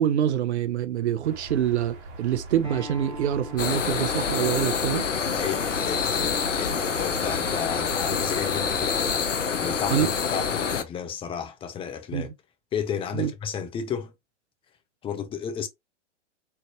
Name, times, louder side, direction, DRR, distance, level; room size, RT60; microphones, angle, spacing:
voice 1, 0.0-5.1 9.9-10.1 12.1-12.3 13.1-13.3, right 10 dB, 65° right, 0.7 m, -25 dB
sound 1, 1.2-9.2, right 2 dB, 45° right, 1.6 m, -41 dB
Acoustic guitar, 2.6-7.8, left 2 dB, 15° right, 1.9 m, -45 dB
sound 2, 3.6-10.8, left 6 dB, 90° left, 0.7 m, -27 dB
voice 2, 5.3-9.3 9.6-12.3 12.7-14.1 15.0-15.7, left 7 dB, 15° left, 0.6 m, -33 dB
3.9 x 3.4 x 2.8 m
figure-of-eight pair, 110°, 36 cm